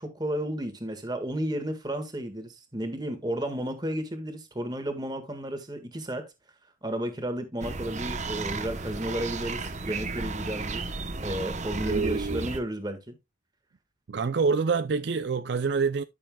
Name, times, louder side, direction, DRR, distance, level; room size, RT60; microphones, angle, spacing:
voice 1, 0.0-6.2 6.8-10.9 11.2-13.2, right 1 dB, 20° right, 1.6 m, -33 dB
sound 1, 7.6-12.6, right 3 dB, 35° right, 0.9 m, -34 dB
voice 2, 11.7-12.4 14.1-16.0, right 5 dB, 60° right, 0.4 m, -27 dB
13.0 x 6.8 x 2.3 m
head